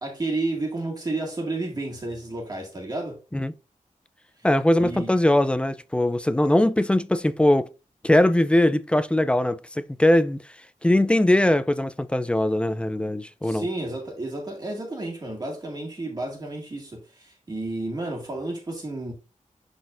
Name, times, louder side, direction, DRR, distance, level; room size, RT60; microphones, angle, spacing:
voice 1, 0.0-3.2 4.8-5.1 13.4-19.1, right 2 dB, 30° right, 1.9 m, -31 dB
voice 2, 4.4-7.7 8.0-10.4 10.8-13.7, left 1 dB, 10° left, 0.4 m, -21 dB
11.0 x 4.0 x 2.5 m
wide cardioid pair, 175°, 13 cm